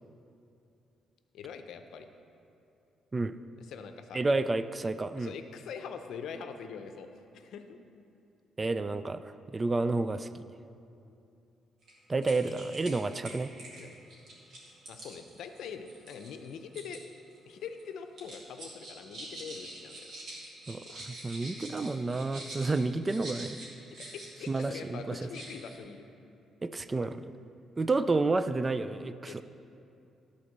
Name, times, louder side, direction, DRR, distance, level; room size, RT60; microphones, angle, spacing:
voice 1, 1.3-2.1 3.6-4.3 5.1-7.8 13.7-14.0 14.9-17.0 17.5-20.1 20.8-20.9 24.0-26.1 29.3-29.4, left 6 dB, 75° left, 7 dB, 0.6 m, -43 dB
voice 2, 4.1-5.3 8.6-10.3 12.1-13.5 20.7-23.6 24.5-25.2 26.6-27.2 27.8-29.4, right 3 dB, 25° right, 12 dB, 0.3 m, -30 dB
sound 1, 11.8-11.9 12.2-12.9 13.2-17.0 17.3-17.8 18.2-24.8 25.1-25.8, right 1 dB, 65° right, 2.2 m, -46 dB
11.0 x 4.2 x 6.5 m, 2.7 s
cardioid pair, 90°, 0 cm